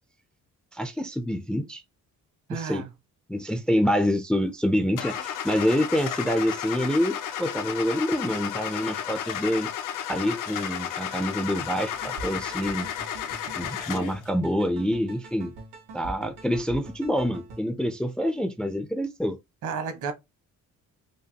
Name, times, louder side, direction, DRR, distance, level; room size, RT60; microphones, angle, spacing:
voice 1, 0.7-1.8 2.5-2.8 3.3-9.7 10.1-12.9 13.6-15.5 15.9-19.4, equal, 5° left, 0.4 m, -26 dB
voice 2, 2.5-2.9 19.6-20.1, right 5 dB, 70° right, 1.2 m, -31 dB
Car / Engine starting, 5.0-14.2, left 9 dB, 80° left, 0.7 m, -33 dB
sound 1, 11.9-17.6, right 2 dB, 85° right, 2.1 m, -43 dB
5.2 x 2.3 x 2.8 m
cardioid pair, 165°, 31 cm